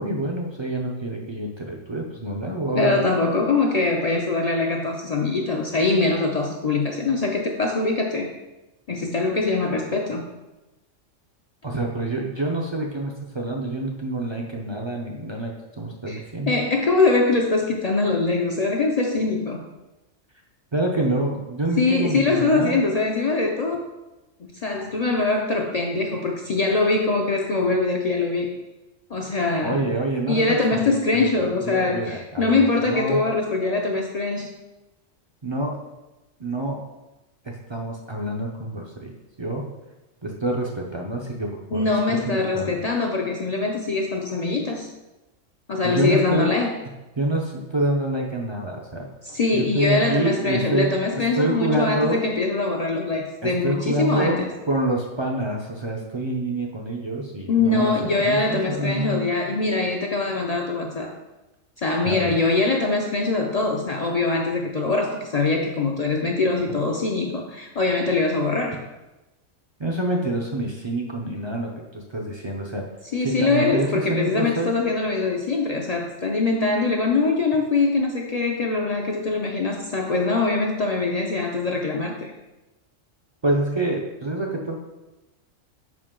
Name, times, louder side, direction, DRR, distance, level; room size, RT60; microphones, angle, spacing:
voice 1, 0.0-3.0 11.6-15.5 15.8-16.6 20.7-22.8 29.6-30.6 30.9-33.2 35.4-35.8 36.4-36.8 37.4-39.1 39.4-39.7 40.2-42.8 45.8-46.5 47.2-49.1 49.5-51.0 51.4-52.2 53.4-54.4 54.7-59.2 62.1-62.4 69.8-72.8 73.2-74.7 83.4-84.8, right 1 dB, 50° right, 0 dB, 0.3 m, -27 dB
voice 2, 2.7-8.3 8.9-10.3 16.1-16.2 16.5-19.6 21.8-23.8 24.4-28.5 29.1-29.8 30.3-34.5 41.7-44.9 45.7-46.7 49.2-54.5 57.5-61.1 61.8-68.8 73.1-82.3, left 3 dB, 60° left, 1 dB, 0.4 m, -23 dB
5.3 x 4.8 x 3.7 m, 1.0 s
omnidirectional pair, 1.3 m